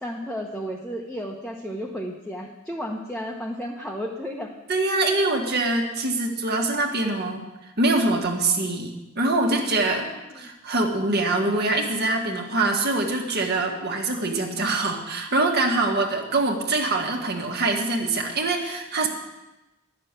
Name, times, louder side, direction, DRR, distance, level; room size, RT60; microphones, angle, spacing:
voice 1, 0.0-4.5 9.7-10.4, equal, 5° left, -2 dB, 1.1 m, -33 dB
voice 2, 4.7-8.9 9.1-10.1 10.3-19.1, right 2 dB, 50° right, 1 dB, 1.7 m, -24 dB
11.5 x 6.7 x 8.9 m, 1.0 s
head